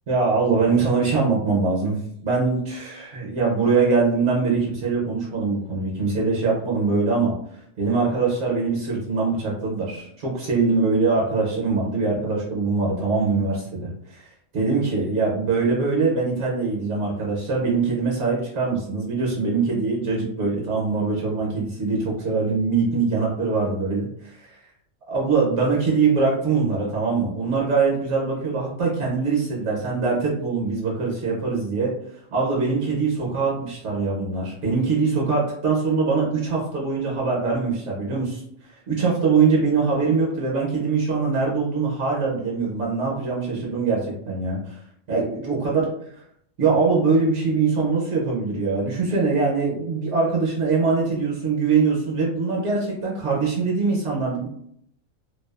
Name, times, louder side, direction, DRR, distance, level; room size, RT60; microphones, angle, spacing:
voice 1, 0.1-7.3 7.8-14.3 14.5-24.6 25.1-31.9 32.3-38.4 38.9-44.8 45.1-45.9 46.6-54.5, right 4 dB, 65° right, -3 dB, 0.9 m, -23 dB
2.6 x 2.3 x 2.3 m, 0.70 s
omnidirectional pair, 1.4 m